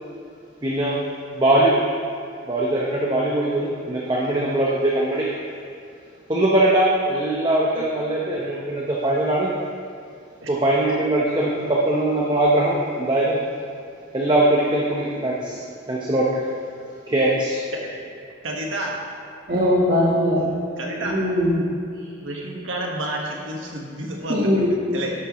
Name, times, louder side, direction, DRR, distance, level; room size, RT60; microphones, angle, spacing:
voice 1, 0.6-1.0 1.3-1.8 2.5-5.3 6.3-9.5 10.5-13.4 14.1-16.4 17.1-17.6, right 1 dB, 25° right, -4 dB, 0.9 m, -21 dB
voice 2, 18.4-18.9 20.8-21.2 22.2-25.1, right 1 dB, 80° right, -1 dB, 1.6 m, -30 dB
voice 3, 19.5-20.5 21.0-21.7 24.3-24.8, left 1 dB, 45° right, -7 dB, 1.4 m, -20 dB
11.5 x 8.9 x 3.1 m, 2.4 s
head